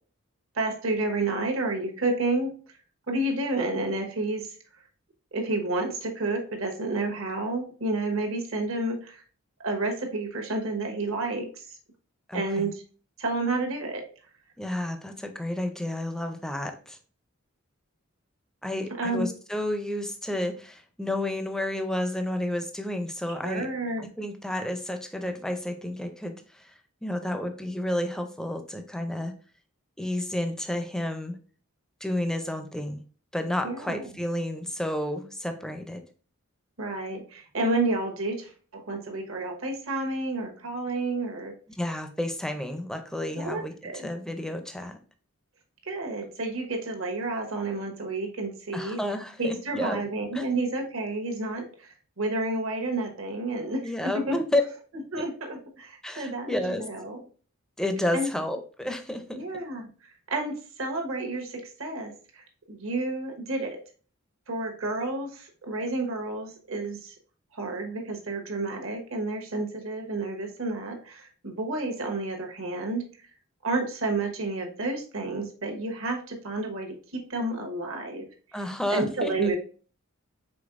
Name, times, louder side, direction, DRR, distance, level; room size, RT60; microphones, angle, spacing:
voice 1, 0.5-2.5 3.1-4.5 5.3-9.2 9.6-11.6 12.3-12.8 13.2-14.0 19.0-19.3 23.4-24.1 33.6-34.1 36.8-41.5 43.4-44.1 45.8-49.0 49.4-53.9 54.3-54.4 55.1-57.2 58.1-58.3 59.3-59.9 60.3-63.8 64.5-67.1 67.5-73.0 73.6-78.2 78.9-79.6, right 2 dB, 70° right, 3 dB, 1.1 m, -30 dB
voice 2, 12.3-12.7 14.6-17.0 18.6-23.7 24.0-26.7 27.0-29.3 30.0-31.4 32.0-33.0 33.3-36.0 41.8-45.0 48.7-50.0 50.3-50.4 53.8-54.6 56.0-56.9 57.8-59.4 78.5-79.5, left 1 dB, 5° left, 6 dB, 0.5 m, -31 dB
5.1 x 3.8 x 2.5 m, 0.39 s
head